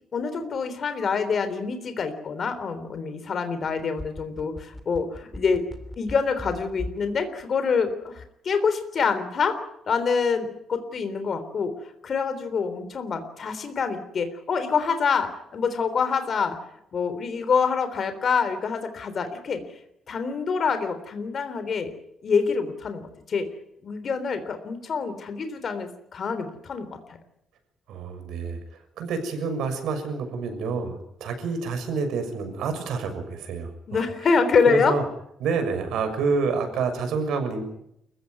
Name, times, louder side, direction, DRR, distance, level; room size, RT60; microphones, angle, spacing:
voice 1, 0.1-5.6 6.0-9.6 9.9-11.7 12.0-16.6 16.9-19.6 20.1-21.9 22.2-23.5 23.8-27.2 33.9-34.9, left 5 dB, 40° left, 9 dB, 3.6 m, -26 dB
sound 1, 3.7-7.1 7.4-7.5, left 1 dB, 5° left, 3.0 m, -37 dB
voice 2, 27.9-28.6 29.0-34.0 34.7-35.0 35.4-37.6, right 4 dB, 80° right, 6 dB, 6.5 m, -28 dB
29.0 x 15.5 x 9.6 m, 0.78 s
cardioid pair, 170°, 0 cm